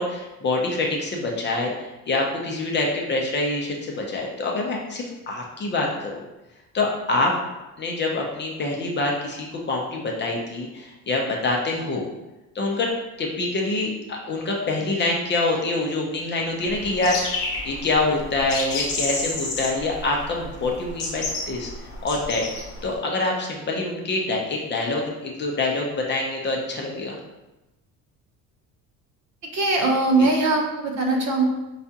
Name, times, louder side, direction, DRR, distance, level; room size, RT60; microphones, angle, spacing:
voice 1, 0.0-1.7 2.1-6.2 6.7-7.4 7.8-12.0 12.5-12.9 13.2-21.7 22.0-22.4 22.8-27.2 30.2-30.3, left 2 dB, 30° left, 0 dB, 0.6 m, -25 dB
sound 1, 16.6-22.9, left 3 dB, 75° left, 0.9 m, -31 dB
voice 2, 29.5-31.4, right 2 dB, 50° right, 1 dB, 0.8 m, -21 dB
4.8 x 2.3 x 2.7 m, 1.0 s
cardioid pair, 135°, 35 cm